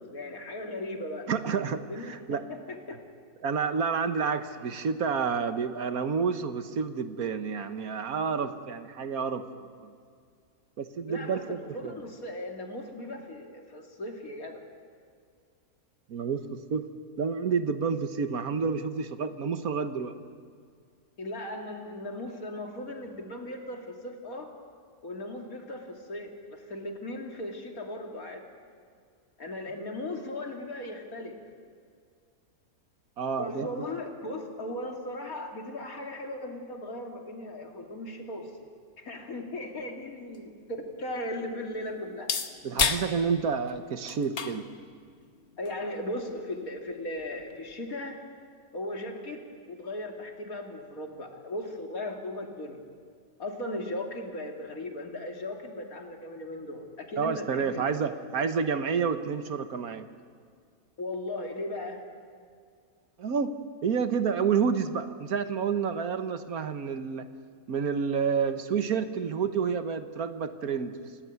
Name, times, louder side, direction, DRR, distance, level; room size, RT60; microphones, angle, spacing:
voice 1, 0.0-1.3 1.9-2.2 2.5-3.0 11.1-14.6 21.2-24.5 25.0-28.4 29.4-31.4 33.4-38.7 39.0-42.3 45.6-48.2 48.7-49.4 49.7-52.8 53.4-57.8 61.0-62.0, left 1 dB, 70° left, 2 dB, 3.2 m, -37 dB
voice 2, 1.3-2.4 3.4-9.9 10.8-12.0 16.1-16.9 17.2-20.1 33.2-33.9 42.6-44.7 57.2-60.1 63.2-63.6 63.8-67.3 67.7-71.0, right 6 dB, 75° right, 9 dB, 1.7 m, -29 dB
sound 1, 39.8-47.8, left 6 dB, 50° left, 1.4 m, -36 dB
28.0 x 17.5 x 9.4 m, 2.1 s
omnidirectional pair, 1.6 m